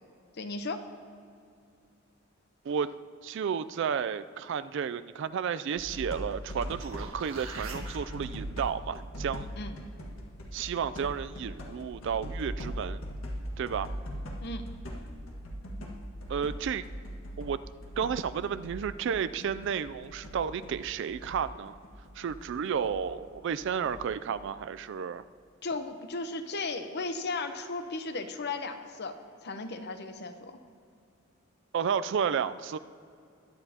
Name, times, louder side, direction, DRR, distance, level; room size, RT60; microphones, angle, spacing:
voice 1, 0.4-0.8 9.6-9.8 14.4-14.7 25.6-29.2 29.4-30.6, left 3 dB, 55° left, 8 dB, 0.8 m, -35 dB
voice 2, 3.2-9.5 10.5-13.0 13.6-13.9 16.3-16.8 17.4-17.6 18.0-21.7 22.2-25.2 31.7-32.8, right 7 dB, 60° right, 13 dB, 0.3 m, -32 dB
sound 1, 5.8-7.1 7.3-19.8 20.0-23.0 23.3-24.2, equal, 80° left, 1.6 m, -40 dB
sound 2, 6.5-8.0 12.8-12.9, right 4 dB, 85° right, 1.5 m, -44 dB
21.0 x 10.0 x 2.8 m, 2.4 s
head